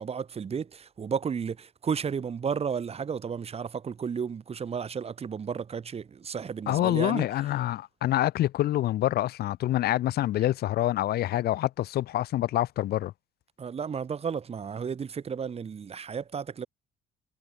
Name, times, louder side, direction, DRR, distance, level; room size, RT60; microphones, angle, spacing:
voice 1, 0.0-7.3 13.6-16.7, right 6 dB, 35° right, 5.6 m, -33 dB
voice 2, 6.7-13.1, left 14 dB, 70° left, 2.0 m, -26 dB
cardioid pair, 110°, 17 cm